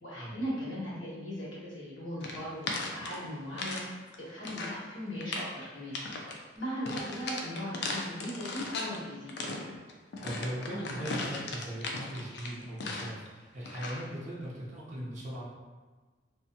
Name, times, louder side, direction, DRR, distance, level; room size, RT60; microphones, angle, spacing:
voice 1, 0.0-3.8 4.2-5.9 6.5-9.3, equal, 85° left, -8 dB, 1.2 m, -38 dB
sound 1, 2.2-3.9 4.1-4.8 5.2-5.5 5.9-6.4 6.9-9.0 9.3-13.3 13.7-14.1, left 3 dB, 60° left, 0.4 m, -37 dB
voice 2, 10.2-15.5, right 1 dB, 40° right, -6 dB, 0.6 m, -39 dB
2.6 x 2.2 x 2.6 m, 1.3 s
head